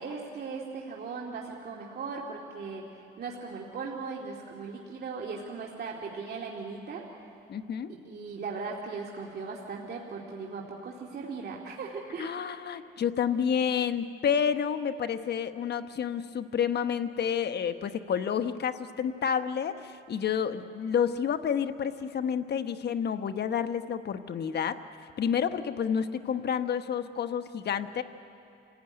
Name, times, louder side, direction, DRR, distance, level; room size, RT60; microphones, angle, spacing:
voice 1, 0.0-7.0 7.9-12.3, right 4 dB, 55° right, -2 dB, 2.4 m, -38 dB
voice 2, 7.5-7.9 12.2-28.0, left 7 dB, 55° left, 9 dB, 1.1 m, -29 dB
27.5 x 17.0 x 9.7 m, 2.7 s
cardioid pair, 90°, 20 cm